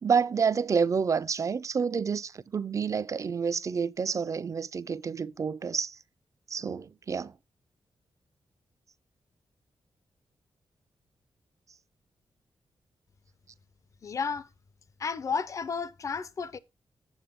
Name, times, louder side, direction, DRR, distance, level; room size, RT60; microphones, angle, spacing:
voice 1, 0.0-6.0 6.5-7.3, right 6 dB, 35° right, 0.4 m, -28 dB
voice 2, 14.0-14.5 15.0-16.6, left 5 dB, 35° left, 0.4 m, -32 dB
8.8 x 7.4 x 3.5 m
wide cardioid pair, 165°, 9 cm